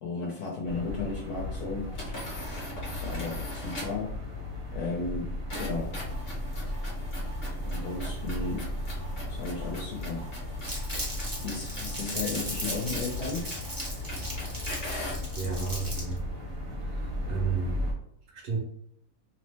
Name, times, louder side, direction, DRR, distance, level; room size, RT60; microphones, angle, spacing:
voice 1, 0.0-1.9 2.9-4.1 4.7-5.9 7.6-8.7 9.3-10.3 11.4-13.5 15.3-15.4, left 3 dB, 70° left, -2 dB, 1.1 m, -34 dB
sound 1, 0.6-17.9, left 1 dB, 50° right, 0.7 m, -36 dB
sound 2, 1.9-4.1 5.5-15.3, equal, 45° left, 1.0 m, -41 dB
Crumpling crinkling, 10.6-16.2, right 1 dB, 30° right, 0.3 m, -37 dB
voice 2, 15.4-16.2 16.8-17.9 18.3-18.6, right 5 dB, 70° right, 1 dB, 1.1 m, -32 dB
2.9 x 2.0 x 3.2 m, 0.72 s
omnidirectional pair, 1.8 m